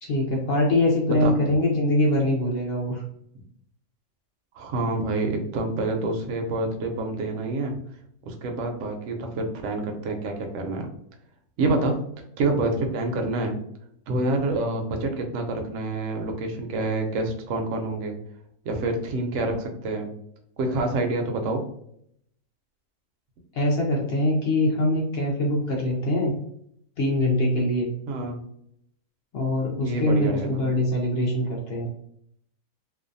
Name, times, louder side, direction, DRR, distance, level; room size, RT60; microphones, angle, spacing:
voice 1, 0.0-3.0 23.5-26.4 27.0-27.9 29.3-31.9, left 1 dB, 70° left, -1 dB, 0.6 m, -23 dB
voice 2, 4.5-7.7 8.2-10.9 11.6-11.9 12.4-13.6 14.1-18.2 18.6-20.1 20.6-21.6 28.1-28.4 29.7-30.6, right 2 dB, 65° right, 4 dB, 0.8 m, -27 dB
2.6 x 2.2 x 2.5 m, 0.69 s
omnidirectional pair, 1.6 m